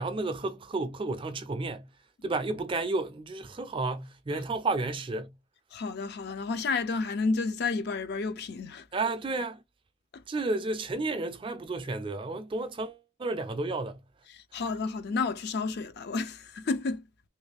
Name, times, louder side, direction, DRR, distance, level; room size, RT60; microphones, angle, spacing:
voice 1, 0.0-1.9 2.2-5.3 8.9-9.6 10.3-14.0, right 3 dB, 25° right, 0.3 m, -32 dB
voice 2, 5.7-8.9 10.1-10.2 14.3-17.1, left 4 dB, 45° left, 0.4 m, -31 dB
3.1 x 2.5 x 3.3 m
head